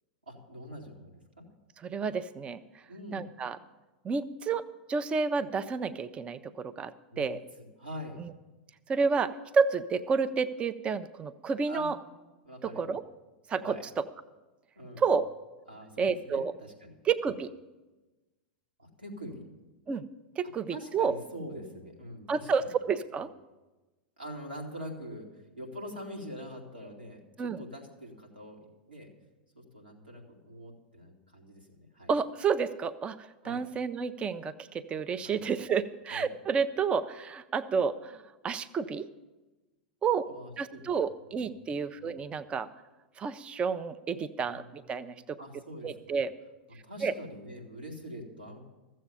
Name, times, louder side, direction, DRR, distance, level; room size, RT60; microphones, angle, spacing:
voice 1, 0.3-1.4 2.9-3.3 7.1-7.3 7.8-8.2 11.6-11.8 12.4-12.9 13.6-13.8 14.8-15.0 15.7-16.9 17.3-17.4 18.8-19.5 20.7-22.7 24.2-28.6 28.9-29.1 29.5-32.1 33.4-33.6 35.2-35.5 36.1-36.3 40.2-41.0 41.3-41.5 42.0-42.2 44.5-46.2 46.8-48.6, equal, 85° right, -2 dB, 2.4 m, -44 dB
voice 2, 1.8-2.6 3.1-3.6 4.0-7.4 8.2-8.3 8.9-12.0 12.6-13.0 13.5-14.0 15.0-15.2 16.0-16.5 17.0-17.5 19.9-20.0 20.4-21.1 22.3-23.3 27.4-27.6 32.1-39.1 40.0-40.2 40.6-42.7 43.2-45.4 45.8-46.3 47.0-47.1, right 5 dB, 20° right, 14 dB, 0.5 m, -30 dB
14.5 x 7.5 x 7.0 m, 1.1 s
figure-of-eight pair, 90°, 5 cm